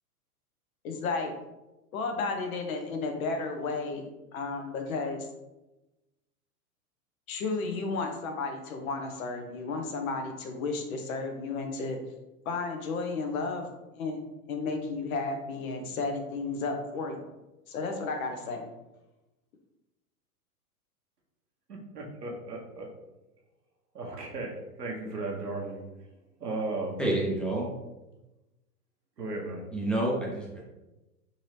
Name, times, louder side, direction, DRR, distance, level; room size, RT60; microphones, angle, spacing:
voice 1, 0.8-1.3 1.9-4.0 4.3-5.3 7.3-12.0 12.4-14.2 14.5-17.2 17.7-18.6, left 3 dB, 60° left, 0.9 m, -33 dB
voice 2, 21.7-22.9 23.9-25.8 26.4-27.0 29.2-29.6, right 2 dB, 90° right, 1.1 m, -35 dB
voice 3, 27.0-27.7 29.7-30.6, right 1 dB, ahead, 0.6 m, -28 dB
3.9 x 2.7 x 3.2 m
hypercardioid pair, 110°, 46 cm